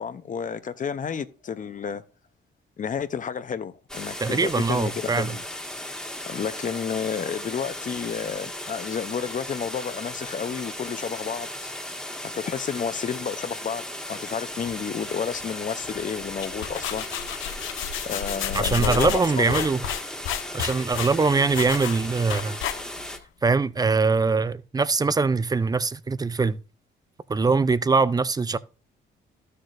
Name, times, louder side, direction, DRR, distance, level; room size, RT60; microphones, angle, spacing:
voice 1, 0.0-2.0 2.8-5.4 6.3-11.5 12.3-13.8 14.1-17.1 18.0-19.7, left 7 dB, 40° left, 0.7 m, -31 dB
sound 1, 3.9-23.2, left 1 dB, 5° left, 1.6 m, -36 dB
voice 2, 4.2-5.3 18.5-19.8 20.5-22.6 23.4-26.6 27.3-28.6, right 4 dB, 20° right, 0.4 m, -22 dB
sound 2, 16.2-23.2, left 9 dB, 80° left, 0.6 m, -31 dB
13.0 x 6.5 x 2.5 m
cardioid pair, 90°, 20 cm